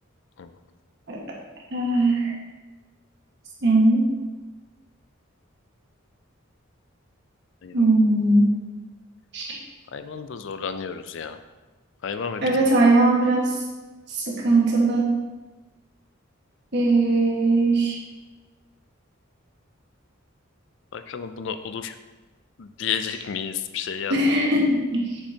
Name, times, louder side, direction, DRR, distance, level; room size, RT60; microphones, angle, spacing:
voice 1, 1.7-2.3 3.6-4.1 7.7-8.5 9.3-9.6 12.4-13.5 14.1-15.1 16.7-18.0 24.1-25.2, right 2 dB, 55° right, -2 dB, 1.6 m, -20 dB
voice 2, 9.9-11.4 12.0-12.4 20.9-21.9 22.6-24.2, left 7 dB, 60° left, 10 dB, 0.4 m, -31 dB
8.1 x 6.7 x 2.8 m, 1.2 s
head